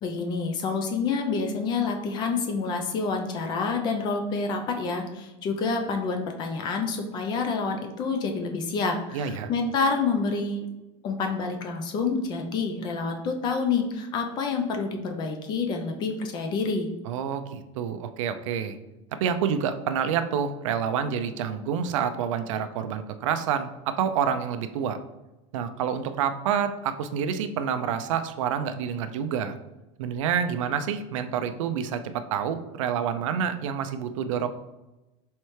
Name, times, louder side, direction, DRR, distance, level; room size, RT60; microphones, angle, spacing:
voice 1, 0.0-10.7 11.0-16.9, left 4 dB, 25° left, 4 dB, 0.5 m, -28 dB
voice 2, 9.1-9.5 17.1-18.8 19.2-25.0 25.5-29.6 30.0-34.5, right 8 dB, 90° right, 10 dB, 0.5 m, -28 dB
4.3 x 3.2 x 3.2 m, 1.0 s
supercardioid pair, 160°, 16 cm